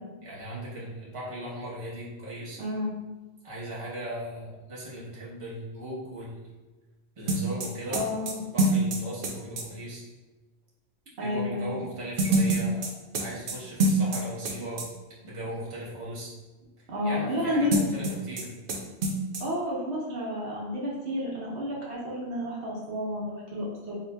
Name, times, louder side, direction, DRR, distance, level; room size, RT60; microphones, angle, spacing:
voice 1, 0.2-2.6 3.4-6.4 7.2-8.0 8.4-10.0 11.2-12.9 13.2-14.8 15.2-16.3 16.8-18.5, right 1 dB, 30° right, -7 dB, 0.9 m, -38 dB
voice 2, 2.6-2.9 7.9-8.4 11.2-11.8 16.9-17.8 19.4-24.0, left 1 dB, 75° right, -5 dB, 1.0 m, -30 dB
sound 1, 7.3-9.7 12.2-14.5 14.8-14.9 17.7-18.4 18.7-18.8 19.0-19.4, right 2 dB, 60° right, 0.6 m, -25 dB
4.0 x 2.8 x 2.2 m, 1.2 s
omnidirectional pair, 1.1 m